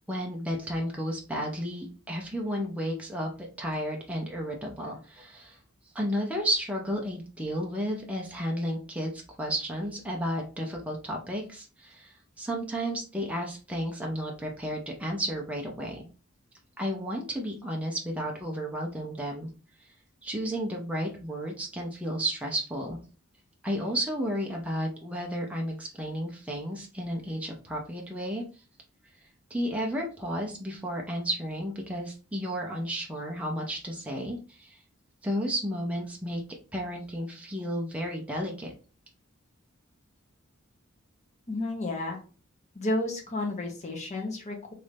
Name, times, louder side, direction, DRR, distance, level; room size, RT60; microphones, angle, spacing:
voice 1, 0.0-5.6 5.9-16.0 16.8-19.5 20.2-23.0 23.6-28.4 29.5-34.8 35.2-36.4 36.7-38.7, equal, 5° right, -1 dB, 0.6 m, -32 dB
voice 2, 41.5-42.2 42.7-44.7, left 2 dB, 35° left, 1 dB, 1.0 m, -31 dB
3.1 x 2.6 x 3.4 m, 0.35 s
head